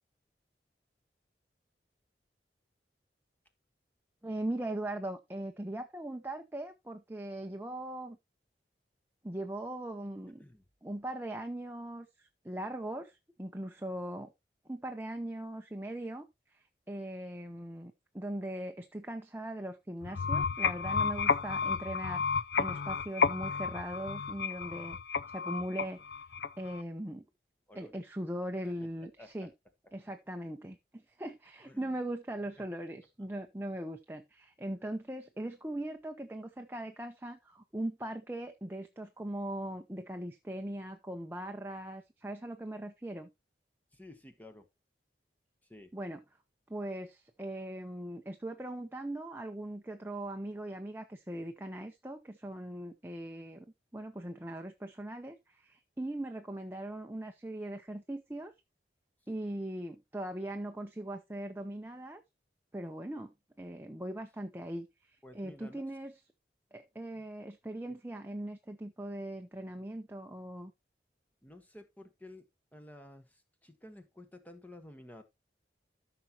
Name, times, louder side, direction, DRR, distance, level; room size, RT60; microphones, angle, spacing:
voice 1, 4.2-8.2 9.2-10.4 10.8-14.3 14.7-16.3 16.5-22.2 22.6-25.0 25.3-26.2 26.6-27.2 27.7-29.5 29.9-43.3 45.9-46.2 46.7-53.6 53.9-58.5 59.3-62.2 62.7-63.3 63.6-66.2 66.7-70.7, right 1 dB, 10° right, 0.7 m, -40 dB
sound 1, 20.0-26.8, left 5 dB, 65° left, 0.5 m, -32 dB
voice 2, 27.7-28.0 28.6-28.7 29.2-29.5 31.6-31.9 43.9-44.7 45.7-45.9 65.2-65.8 67.1-67.2 71.4-72.4 72.7-75.2, left 1 dB, 10° left, 1.3 m, -52 dB
14.0 x 6.0 x 2.9 m
head